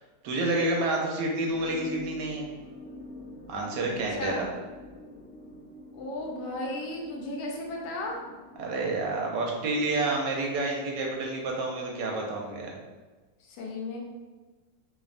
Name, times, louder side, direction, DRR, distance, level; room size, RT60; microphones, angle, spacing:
voice 1, 0.2-2.5 3.5-4.5 8.6-12.8, right 2 dB, 75° right, -1 dB, 1.2 m, -29 dB
sound 1, 1.5-8.8, left 1 dB, 35° left, 0.7 m, -46 dB
voice 2, 3.9-4.5 5.9-8.2 13.5-14.0, left 2 dB, 75° left, -1 dB, 1.1 m, -35 dB
3.1 x 2.0 x 2.4 m, 1.3 s
omnidirectional pair, 1.9 m